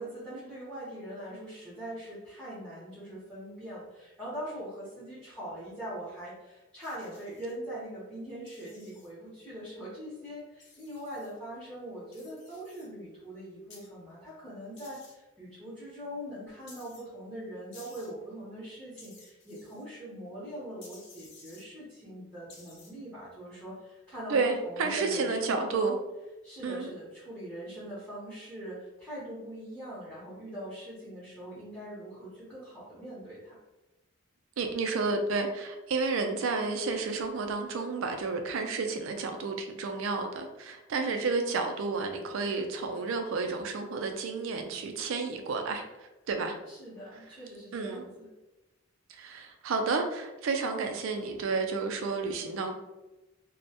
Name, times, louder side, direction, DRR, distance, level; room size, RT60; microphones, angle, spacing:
voice 1, 0.0-25.7 26.4-33.6 46.7-48.3, right 1 dB, 5° left, -10 dB, 0.7 m, -42 dB
sound 1, 6.8-7.5 8.5-9.1 10.6-11.3 12.1-12.9 13.7-13.9 14.8-15.1 16.7-17.0 17.7-18.1 19.0-19.9 20.8-21.6 22.5-22.9, left 3 dB, 55° left, 0.6 m, -54 dB
voice 2, 24.3-26.0 26.6-26.9 34.6-46.6 47.7-48.0 49.1-52.7, right 4 dB, 70° right, 5 dB, 0.3 m, -31 dB
2.2 x 2.1 x 2.7 m, 1.0 s
head